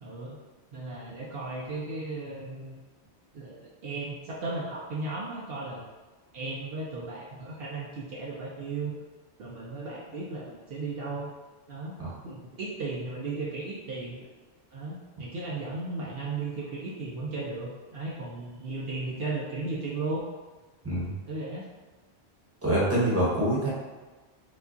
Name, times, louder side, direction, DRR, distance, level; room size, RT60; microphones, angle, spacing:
voice 1, 0.0-0.4 0.7-2.8 3.3-5.9 6.3-8.9 9.4-11.3 11.7-12.0 12.2-14.2 14.7-20.2 21.0-21.6, right 3 dB, 65° right, -4 dB, 0.8 m, -35 dB
voice 2, 22.6-23.7, right 1 dB, 15° right, -7 dB, 1.0 m, -25 dB
4.8 x 2.3 x 2.6 m, 1.3 s
omnidirectional pair, 1.1 m